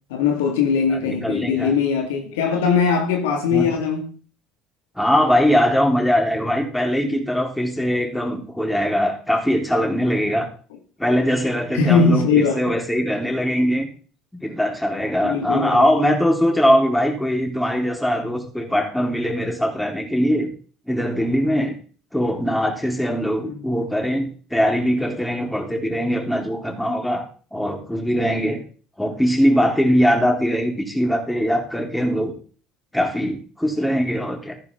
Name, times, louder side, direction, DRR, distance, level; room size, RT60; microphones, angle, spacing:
voice 1, 0.1-4.2 11.7-12.7 15.2-15.8 23.4-23.6, left 5 dB, 70° left, 2.4 m, -20 dB
voice 2, 1.0-1.7 3.5-3.7 5.0-10.5 11.0-13.9 14.3-20.5 20.9-21.8 22.1-27.2 27.5-28.6 29.0-32.3 32.9-34.6, equal, 5° left, 4.4 m, -21 dB
14.5 x 11.0 x 3.9 m
figure-of-eight pair, 60°, 0 cm